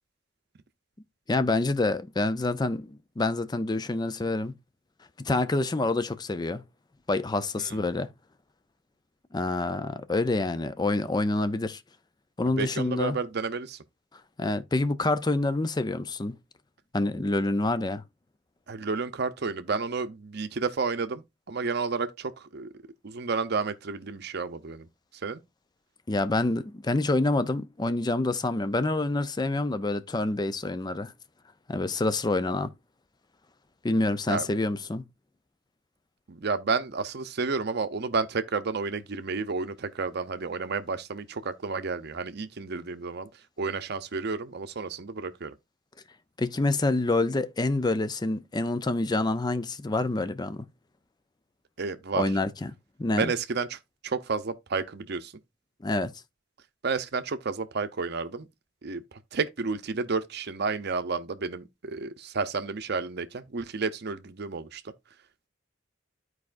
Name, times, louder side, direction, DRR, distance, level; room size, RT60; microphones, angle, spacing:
voice 1, 1.3-4.5 5.2-6.6 7.1-8.1 9.3-11.8 12.4-13.2 14.4-16.4 16.9-18.0 26.1-31.1 31.7-32.7 33.8-35.0 46.4-50.7 52.2-52.7 53.0-53.3 55.8-56.1, left 2 dB, 20° left, 0.5 m, -27 dB
voice 2, 12.5-13.8 18.7-22.7 23.0-24.9 25.1-25.4 34.3-34.5 36.3-43.3 43.6-45.5 51.8-52.3 53.2-55.3 56.8-58.5 58.8-64.8, right 4 dB, 55° right, 0.7 m, -31 dB
13.0 x 4.8 x 2.5 m
head